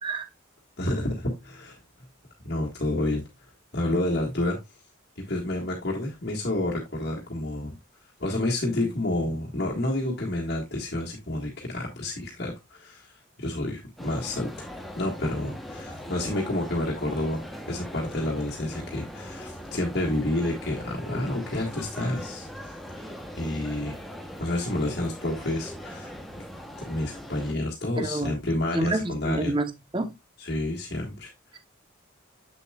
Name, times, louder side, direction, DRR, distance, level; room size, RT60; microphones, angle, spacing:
voice 1, 0.8-1.8 2.4-3.2 3.7-4.6 5.3-7.8 8.2-14.7 15.0-22.5 23.4-23.9 24.4-26.1 26.8-29.5 30.4-31.6, left 1 dB, 50° left, 1.6 m, -29 dB
sound 1, 14.0-27.5, equal, ahead, 0.9 m, -40 dB
voice 2, 28.0-28.3 28.7-30.1, right 2 dB, 25° right, 0.8 m, -28 dB
7.7 x 7.0 x 2.3 m
head